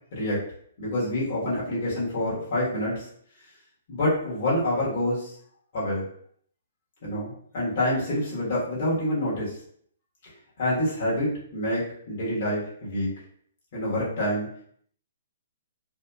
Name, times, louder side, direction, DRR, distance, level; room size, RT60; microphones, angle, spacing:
voice 1, 0.8-3.1 3.9-5.3 5.7-6.1 7.0-9.6 10.2-10.3 10.6-13.1 13.7-14.5, left 1 dB, 50° left, -8 dB, 1.3 m, -27 dB
2.8 x 2.4 x 2.3 m, 0.63 s
hypercardioid pair, 135°, 0 cm